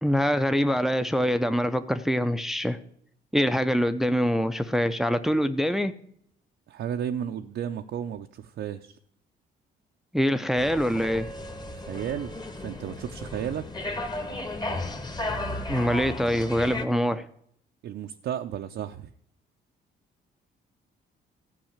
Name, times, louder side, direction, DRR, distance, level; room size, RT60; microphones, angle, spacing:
voice 1, 0.0-2.8 3.3-5.9 10.1-11.3 15.7-17.3, equal, ahead, 10 dB, 0.7 m, -24 dB
voice 2, 6.7-9.0 11.7-13.9 17.8-19.1, right 9 dB, 65° right, 4 dB, 0.7 m, -33 dB
sound 1, 10.6-16.8, left 2 dB, 20° left, 1.5 m, -34 dB
13.5 x 5.5 x 8.8 m, 0.68 s
cardioid pair, 90°, 20 cm